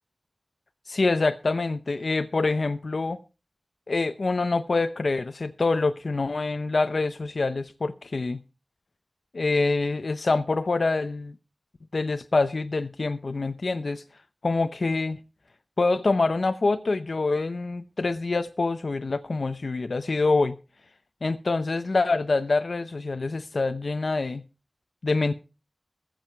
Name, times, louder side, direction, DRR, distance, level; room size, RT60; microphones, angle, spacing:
voice 1, 0.9-3.2 3.9-8.4 9.3-11.3 11.9-14.0 14.4-15.2 15.8-20.5 21.2-24.4 25.0-25.3, left 3 dB, 80° left, 0.7 m, -25 dB
19.0 x 7.7 x 4.6 m
wide cardioid pair, 70°, 0 cm